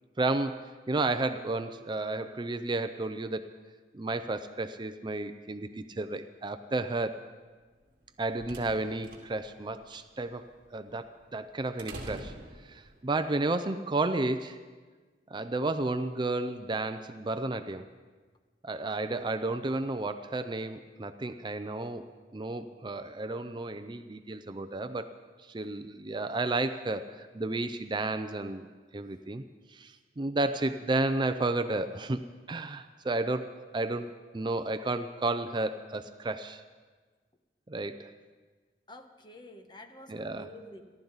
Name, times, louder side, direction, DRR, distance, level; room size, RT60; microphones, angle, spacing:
voice 1, 0.2-3.5 3.9-7.2 8.2-10.4 10.7-12.3 12.7-14.6 15.3-17.9 18.6-22.1 22.3-25.1 25.5-28.7 28.9-29.4 29.7-36.6 37.7-38.1 40.1-40.5, right 2 dB, 25° right, 9 dB, 0.5 m, -32 dB
sound 1, 7.9-13.2, right 1 dB, 55° right, 2.2 m, -47 dB
voice 2, 38.9-40.9, left 1 dB, 25° left, 7 dB, 1.0 m, -49 dB
29.0 x 12.0 x 4.0 m, 1.4 s
head